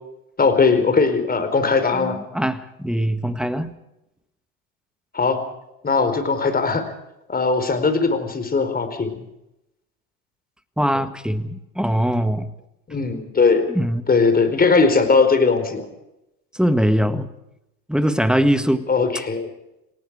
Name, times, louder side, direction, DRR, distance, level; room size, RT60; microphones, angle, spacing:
voice 1, 0.4-2.2 5.1-5.4 5.8-6.9 7.3-9.2 12.9-13.7 14.1-15.9 18.9-19.5, left 4 dB, 20° left, 8 dB, 4.6 m, -19 dB
voice 2, 1.9-3.7 10.8-12.5 13.7-14.0 16.5-17.3 17.9-18.9, equal, ahead, 11 dB, 1.7 m, -21 dB
28.0 x 18.5 x 5.0 m, 0.89 s
hypercardioid pair, 85°, 45 cm